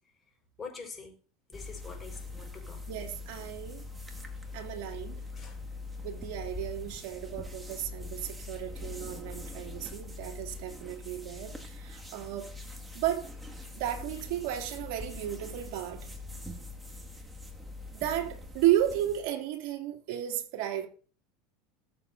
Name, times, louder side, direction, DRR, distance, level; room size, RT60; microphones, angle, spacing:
voice 1, 0.6-1.1 1.5-2.8 4.1-4.6 5.3-5.6, left 4 dB, 25° left, 5.4 m, -45 dB
sound 1, 1.5-19.3, left 3 dB, 10° right, 2.3 m, -43 dB
voice 2, 2.9-3.8 4.5-5.2 6.0-12.5 12.9-13.3 13.7-16.1 17.9-20.9, right 12 dB, 65° right, 3.0 m, -33 dB
20.0 x 7.5 x 2.8 m
hypercardioid pair, 90°, 0 cm